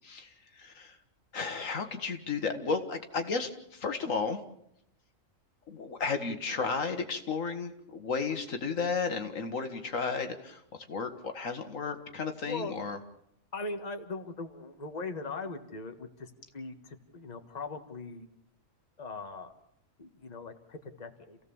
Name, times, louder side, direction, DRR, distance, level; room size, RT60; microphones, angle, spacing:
voice 1, 0.6-1.0 1.3-4.4 5.7-10.6 10.9-13.0, left 4 dB, 80° left, 6 dB, 2.0 m, -33 dB
voice 2, 13.5-18.3 19.0-19.5 20.0-21.4, left 3 dB, 30° left, 6 dB, 1.6 m, -40 dB
28.0 x 16.0 x 7.1 m, 0.77 s
omnidirectional pair, 1.4 m